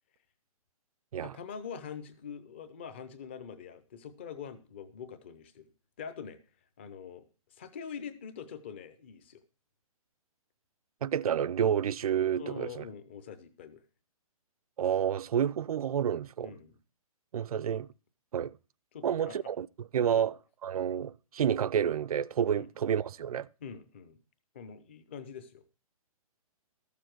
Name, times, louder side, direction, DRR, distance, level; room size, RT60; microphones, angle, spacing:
voice 1, 1.2-5.6 6.0-6.4 6.8-7.2 7.5-9.4 12.4-13.8 16.4-16.7 18.9-19.4 20.1-20.2 22.5-22.7 23.6-24.2 24.5-25.6, left 7 dB, 20° left, 0.6 m, -44 dB
voice 2, 11.0-12.8 14.8-16.5 17.3-17.9 18.3-18.6 19.0-23.5, right 9 dB, 85° right, 0.5 m, -29 dB
13.0 x 6.9 x 4.5 m
hypercardioid pair, 180°, 18 cm